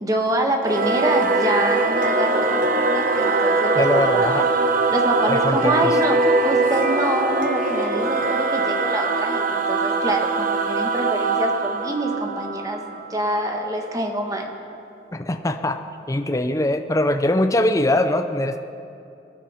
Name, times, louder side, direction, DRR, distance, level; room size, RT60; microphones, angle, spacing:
voice 1, 0.0-3.8 4.1-4.3 4.9-6.2 6.4-14.5, right 1 dB, 20° right, 3 dB, 1.4 m, -25 dB
Singing / Musical instrument, 0.6-13.5, right 3 dB, 50° right, 0.9 m, -22 dB
voice 2, 3.8-4.5 5.2-6.0 15.1-15.8 16.1-18.6, left 1 dB, 20° left, 7 dB, 0.6 m, -22 dB
23.5 x 10.5 x 4.3 m, 2.6 s
head